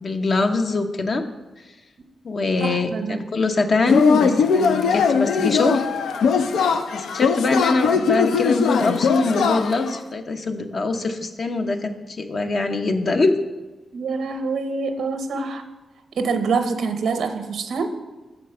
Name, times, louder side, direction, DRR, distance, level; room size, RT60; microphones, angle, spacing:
voice 1, 0.0-1.2 2.2-5.9 6.9-13.4 15.3-15.5, left 3 dB, 55° left, 6 dB, 0.7 m, -23 dB
voice 2, 2.6-3.2 13.9-15.6 16.1-18.0, right 4 dB, 80° right, 7 dB, 0.7 m, -25 dB
Yell / Cheering, 3.9-10.0, left 6 dB, 80° left, 0.4 m, -20 dB
6.8 x 4.5 x 6.5 m, 1.2 s
cardioid pair, 55°, 0 cm